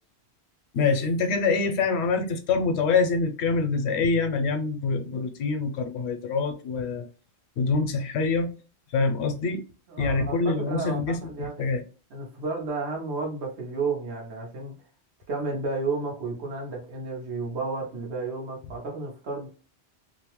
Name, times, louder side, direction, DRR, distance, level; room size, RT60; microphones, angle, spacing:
voice 1, 0.7-7.1 7.6-8.5 8.9-9.6 10.0-11.8, left 4 dB, 85° left, 0.9 m, -25 dB
voice 2, 9.9-11.7 12.1-14.7 15.3-19.5, right 3 dB, 85° right, 1.1 m, -32 dB
2.7 x 2.1 x 2.9 m
omnidirectional pair, 1.1 m